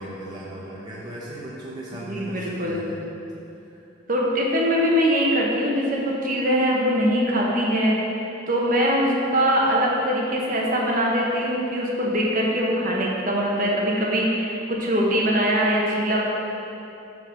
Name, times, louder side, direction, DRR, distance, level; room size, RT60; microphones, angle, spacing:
voice 1, 0.0-3.0 3.5-3.9, right 1 dB, 20° right, -7 dB, 0.7 m, -37 dB
voice 2, 2.1-2.8 4.1-8.0 8.5-16.2, equal, 45° right, -2 dB, 1.0 m, -22 dB
5.3 x 5.1 x 6.0 m, 2.8 s
head